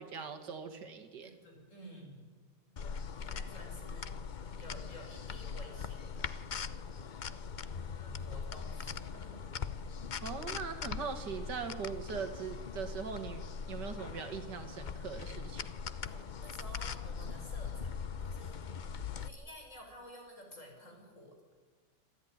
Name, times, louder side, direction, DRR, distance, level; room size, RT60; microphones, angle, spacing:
voice 1, 0.0-1.3 10.2-15.7, right 6 dB, 85° right, 8 dB, 2.4 m, -41 dB
voice 2, 1.2-2.3 2.7-2.8 3.1-4.2 4.6-6.4 7.6-9.5 16.0-17.9 18.2-18.6 19.2-21.4, equal, 45° left, 1 dB, 5.8 m, -52 dB
sound 1, 2.8-19.3, left 6 dB, 65° left, 0.4 m, -41 dB
26.5 x 14.0 x 9.7 m, 1.5 s
omnidirectional pair, 1.8 m